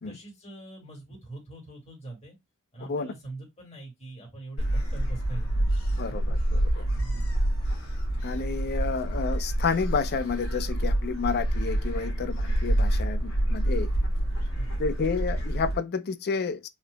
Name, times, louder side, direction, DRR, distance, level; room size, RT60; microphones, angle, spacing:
voice 1, 0.1-2.4 2.7-5.7 6.1-6.2 6.8-7.4 14.6-14.9, right 2 dB, 30° left, 2.1 m, -43 dB
Gull seagull, 4.6-15.8, right 1 dB, 65° left, 1.8 m, -27 dB
voice 2, 6.0-6.9 8.2-13.9 14.8-16.7, left 5 dB, 45° left, 0.4 m, -30 dB
4.4 x 2.8 x 2.2 m
head